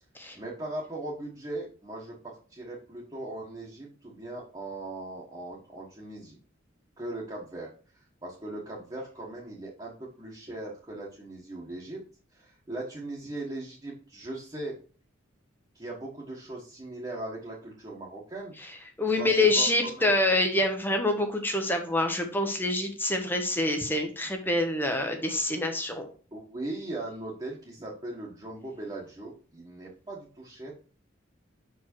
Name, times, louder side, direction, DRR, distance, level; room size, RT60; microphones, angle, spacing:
voice 1, 0.3-6.4 7.0-7.7 8.2-12.0 12.3-14.7 15.7-18.5 19.2-20.1 26.3-30.7, right 2 dB, 20° right, -5 dB, 1.4 m, -39 dB
voice 2, 19.0-26.1, left 2 dB, 10° left, 4 dB, 0.8 m, -26 dB
6.1 x 4.8 x 4.4 m, 0.39 s
head